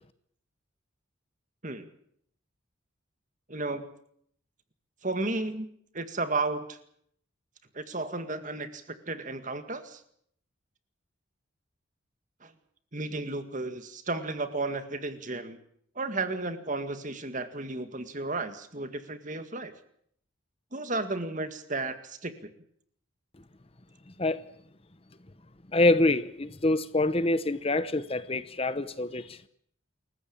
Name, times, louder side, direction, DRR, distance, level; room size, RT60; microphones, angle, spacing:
voice 1, 3.5-3.9 5.0-5.7 5.9-6.8 7.7-10.0 12.4-12.5 12.9-15.6 16.0-19.7 20.7-22.3, right 2 dB, 40° right, 9 dB, 2.0 m, -33 dB
voice 2, 25.7-29.4, left 2 dB, 25° left, 14 dB, 0.9 m, -26 dB
28.0 x 15.0 x 8.8 m, 0.67 s
head